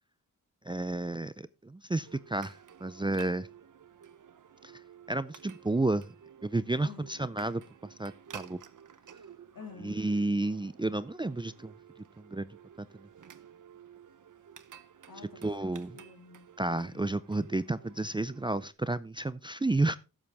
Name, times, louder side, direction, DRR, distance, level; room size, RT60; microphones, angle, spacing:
voice 1, 0.6-3.5 4.6-4.7 5.1-6.1 6.4-7.6 8.0-8.6 9.8-11.7 12.3-12.5 12.8-12.9 15.4-15.9 16.6-20.0, right 2 dB, 15° right, 0.4 m, -31 dB
sound 1, 2.1-18.7, right 8 dB, 60° right, 0.8 m, -53 dB
voice 2, 6.8-7.2 9.5-10.1 15.1-16.5 16.8-17.1, left 6 dB, 75° left, 2.2 m, -50 dB
12.5 x 7.6 x 3.4 m
wide cardioid pair, 75°, 35 cm